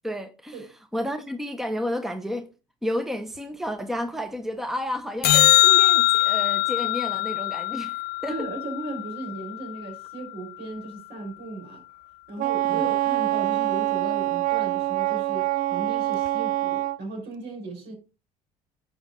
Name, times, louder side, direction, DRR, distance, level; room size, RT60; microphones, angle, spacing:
voice 1, 0.0-0.7 0.9-2.5 2.8-8.0 8.2-8.4 12.7-12.8, equal, ahead, 1.0 m, -31 dB
sound 1, 5.2-9.7 16.3-16.4, left 17 dB, 55° left, 0.6 m, -22 dB
voice 2, 8.3-11.8 12.3-17.9, right 2 dB, 65° right, 4.6 m, -36 dB
Wind instrument woodwind instrument, 12.4-17.0, right 16 dB, 45° right, 0.4 m, -25 dB
10.0 x 5.3 x 3.8 m
hypercardioid pair, 65°, 19 cm